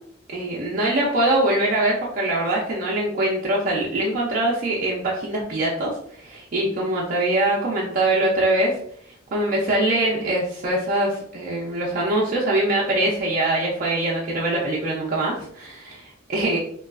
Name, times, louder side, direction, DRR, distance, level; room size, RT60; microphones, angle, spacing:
voice 1, 0.3-8.8 9.3-16.6, right 1 dB, 45° right, -4 dB, 0.5 m, -23 dB
3.0 x 2.2 x 2.4 m, 0.65 s
head